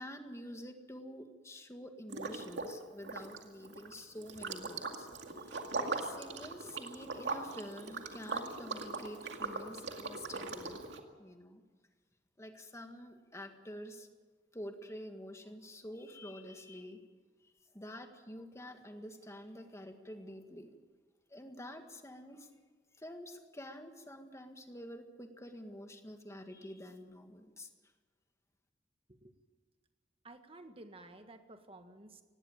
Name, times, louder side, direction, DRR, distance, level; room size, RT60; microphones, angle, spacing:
voice 1, 0.0-5.1 5.9-10.8 11.2-11.6 12.4-14.1 14.5-17.1 17.4-20.7 21.3-22.5 23.0-27.7, equal, 15° left, 6 dB, 1.8 m, -48 dB
Liquid, 2.1-2.8 3.0-11.0, right 3 dB, 85° right, 2.3 m, -40 dB
voice 2, 30.2-32.2, right 2 dB, 35° right, 7 dB, 1.6 m, -53 dB
19.0 x 16.5 x 8.7 m, 1.4 s
head